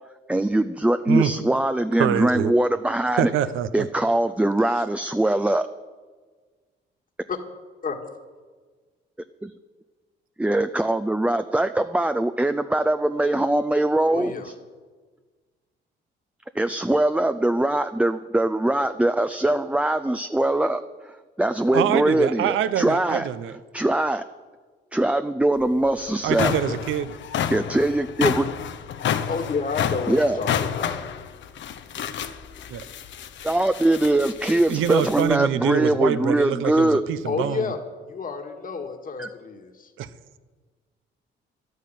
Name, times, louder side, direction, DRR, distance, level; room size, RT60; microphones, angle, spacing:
voice 1, 0.3-3.3 3.7-5.7 9.4-9.5 10.4-14.5 16.5-23.3 23.7-24.2 24.9-26.5 27.5-28.5 30.1-30.4 33.4-37.0 39.2-39.3, right 1 dB, 5° right, 10 dB, 0.5 m, -22 dB
voice 2, 2.0-2.5 3.2-3.9 21.7-23.5 26.2-27.1 32.7-32.8 34.7-37.7 40.0-40.1, right 10 dB, 85° right, 14 dB, 0.9 m, -25 dB
voice 3, 14.0-14.5 26.7-26.8 29.3-31.0 37.2-37.8 38.1-39.9, left 5 dB, 45° left, 4 dB, 1.8 m, -30 dB
sound 1, 25.6-25.7 26.1-35.3, left 8 dB, 70° left, 0.9 m, -30 dB
12.0 x 9.6 x 9.3 m, 1.4 s
cardioid pair, 90°, 20 cm